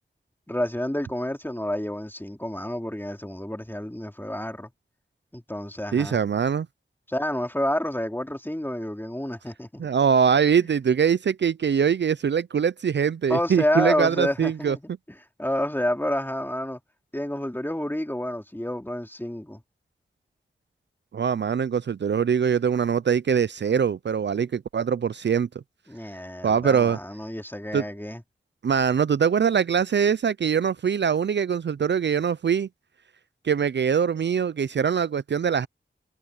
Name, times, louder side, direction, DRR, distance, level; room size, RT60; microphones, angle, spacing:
voice 1, 0.5-4.7 5.3-6.2 7.1-9.9 10.6-10.7 13.3-14.9 15.4-16.8 17.1-19.6 24.3-24.5 25.9-28.2, left 1 dB, 10° left, 3.1 m, -29 dB
voice 2, 5.9-6.7 9.8-14.8 21.1-25.5 26.4-27.0 27.7-27.8 28.6-32.7 33.4-35.7, right 7 dB, 65° right, 0.4 m, -23 dB
wide cardioid pair, 55°, 20 cm